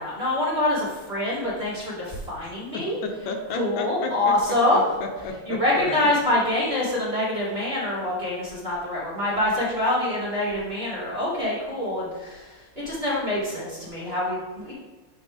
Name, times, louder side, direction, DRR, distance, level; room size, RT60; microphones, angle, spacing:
voice 1, 0.0-3.0 3.5-4.9 5.5-14.7, left 1 dB, 20° right, -7 dB, 2.1 m, -25 dB
voice 2, 2.7-4.3 4.7-6.0, left 4 dB, 75° left, 4 dB, 2.1 m, -33 dB
11.0 x 5.0 x 3.5 m, 1.2 s
omnidirectional pair, 3.3 m